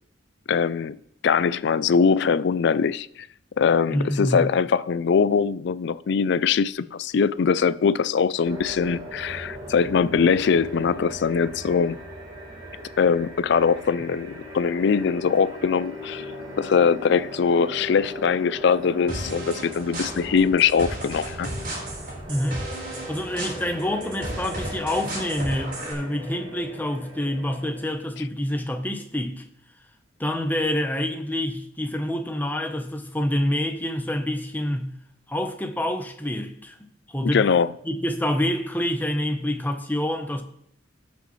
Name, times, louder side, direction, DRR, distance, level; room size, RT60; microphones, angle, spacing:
voice 1, 0.5-1.0 1.2-3.1 3.6-12.0 13.0-16.3 16.6-21.5 37.3-37.7, left 6 dB, 65° left, 0.4 m, -22 dB
voice 2, 3.9-4.4 22.3-22.6 23.1-29.4 30.2-34.9 35.3-36.8 37.1-37.6 37.8-40.4, left 1 dB, 10° left, 0.9 m, -27 dB
sound 1, 8.4-27.9, equal, 20° right, 2.3 m, -39 dB
sound 2, 19.1-25.9, right 1 dB, 50° right, 4.1 m, -35 dB
17.5 x 6.2 x 3.2 m
head